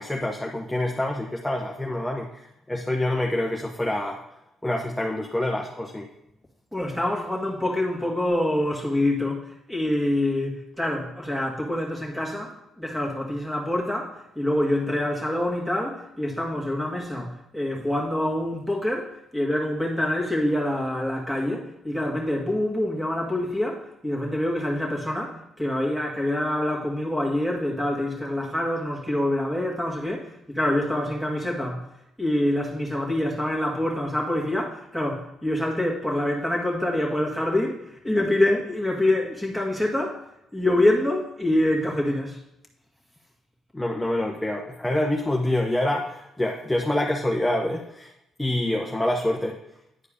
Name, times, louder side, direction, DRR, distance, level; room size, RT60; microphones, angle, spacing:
voice 1, 0.0-4.2 4.6-6.1 43.7-48.1 48.4-49.6, left 1 dB, 10° left, 0.8 m, -26 dB
voice 2, 6.7-31.8 32.2-40.2 40.5-42.4, left 1 dB, 5° right, 2.0 m, -26 dB
10.0 x 4.5 x 5.1 m
cardioid pair, 90°, 0 cm